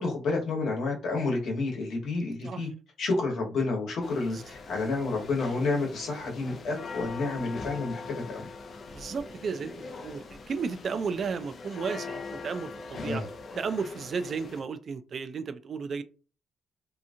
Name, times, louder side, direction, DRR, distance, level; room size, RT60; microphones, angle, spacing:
voice 1, 0.0-2.7 3.0-8.0 8.3-8.5 13.0-13.3, left 3 dB, 70° left, 1.0 m, -30 dB
sound 1, 4.0-14.6, left 4 dB, 45° left, 0.5 m, -42 dB
voice 2, 8.9-13.2 13.5-16.0, right 5 dB, 50° right, 0.3 m, -34 dB
2.8 x 2.4 x 2.6 m
cardioid pair, 90°, 0 cm